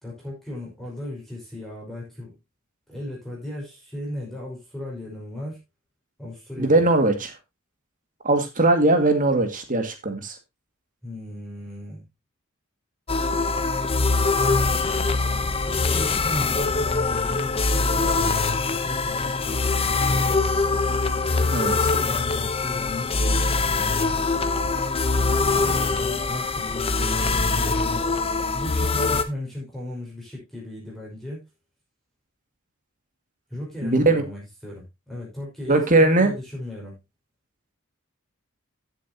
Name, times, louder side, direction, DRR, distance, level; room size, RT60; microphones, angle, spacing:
voice 1, 0.0-2.3 2.9-5.6 6.2-6.8 11.0-12.0 15.4-20.5 21.7-23.7 25.5-28.1 28.5-31.4 33.5-37.0, left 1 dB, ahead, -4 dB, 5.3 m, -36 dB
voice 2, 6.6-7.3 8.2-10.3 21.5-21.9 33.8-34.2 35.7-36.3, right 2 dB, 40° right, 6 dB, 2.2 m, -20 dB
sound 1, 13.1-29.2, left 3 dB, 25° left, 0.9 m, -23 dB
14.5 x 7.6 x 2.9 m, 0.22 s
head